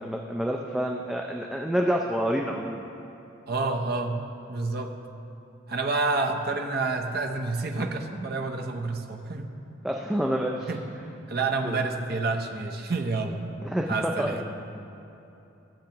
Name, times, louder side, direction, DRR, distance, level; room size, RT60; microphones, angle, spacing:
voice 1, 0.0-2.9 9.8-10.7 11.6-11.8 13.6-14.4, equal, 5° right, 0 dB, 0.4 m, -28 dB
voice 2, 3.5-4.2 4.5-5.0 5.7-9.5 10.7-10.8 11.3-13.5 13.9-14.4, right 3 dB, 50° right, 3 dB, 0.7 m, -28 dB
16.5 x 7.2 x 2.9 m, 2.9 s
head